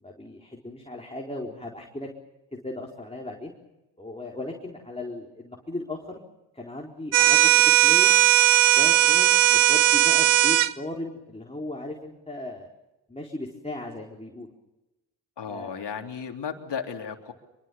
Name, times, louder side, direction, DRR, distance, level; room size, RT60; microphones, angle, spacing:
voice 1, 0.0-2.1 2.6-3.5 4.0-6.2 6.5-8.1 8.8-12.7 13.1-14.5 15.5-15.8, left 2 dB, 15° left, -1 dB, 4.4 m, -37 dB
sound 1, 7.1-10.7, right 14 dB, 70° right, 0.9 m, -18 dB
voice 2, 15.4-17.3, left 6 dB, 60° left, 4 dB, 3.6 m, -34 dB
25.0 x 23.5 x 7.2 m, 1.0 s
supercardioid pair, 50°, 47 cm